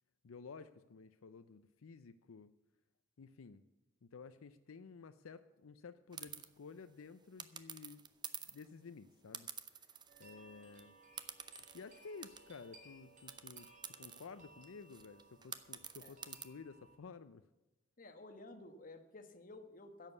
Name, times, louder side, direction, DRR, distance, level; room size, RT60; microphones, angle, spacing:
voice 1, 0.2-2.5 3.2-3.6 4.0-8.0 8.5-9.9 10.2-11.0 11.7-17.4, left 5 dB, 85° left, 11 dB, 0.5 m, -53 dB
sound 1, 6.1-6.5 7.4-8.7 9.3-10.4 10.7-10.8 11.2-12.7 13.3-16.4, right 7 dB, 20° right, 0.6 m, -49 dB
sound 2, 10.1-17.0, right 2 dB, 35° right, 2.2 m, -62 dB
voice 2, 18.0-20.1, left 2 dB, 40° left, 7 dB, 1.3 m, -53 dB
10.5 x 7.4 x 8.2 m, 1.0 s
head